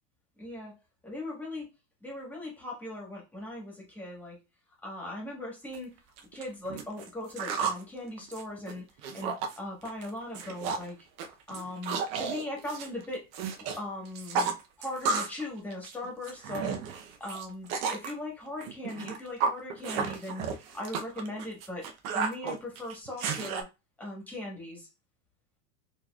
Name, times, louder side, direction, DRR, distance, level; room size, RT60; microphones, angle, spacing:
voice 1, 0.4-0.7 1.0-1.7 2.0-4.4 4.8-5.9 6.3-8.8 9.1-11.0 11.5-13.2 13.8-16.8 17.2-21.8 22.1-23.7 24.0-24.9, left 1 dB, 5° left, -3 dB, 1.4 m, -39 dB
sound 1, 5.7-5.8 6.2-7.8 8.2-9.6 9.8-10.1 10.3-10.9 11.2-13.8 14.1-15.4 15.7-18.1 18.6-23.6, right 5 dB, 50° right, 0.7 m, -33 dB
4.4 x 2.9 x 2.3 m, 0.27 s
supercardioid pair, 135°, 41 cm